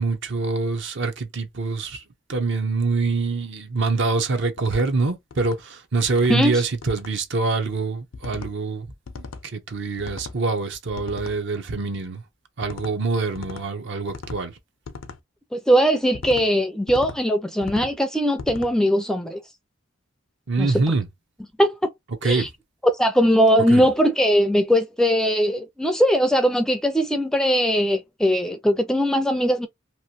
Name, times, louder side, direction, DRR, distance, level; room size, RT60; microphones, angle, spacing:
voice 1, 0.0-2.0 2.3-8.9 9.4-12.2 12.6-14.5 20.5-21.1 22.2-22.5 23.7-23.9, right 3 dB, 65° right, 0.7 m, -25 dB
sound 1, 4.6-4.9 5.3-5.6 6.0-6.3 6.8-7.1 8.1-8.5 9.1-9.5 10.0-10.4 11.0-11.4 12.6-12.9 13.4-13.7 14.1-14.4 14.9-15.2 16.1-16.5 16.9-17.2 17.6-18.0 18.4-18.7, left 4 dB, 85° left, 0.5 m, -37 dB
voice 2, 6.3-6.6 15.5-19.4 20.6-20.7 21.6-21.8 22.2-22.5 23.0-29.7, equal, 5° left, 0.4 m, -20 dB
3.0 x 2.5 x 2.7 m
head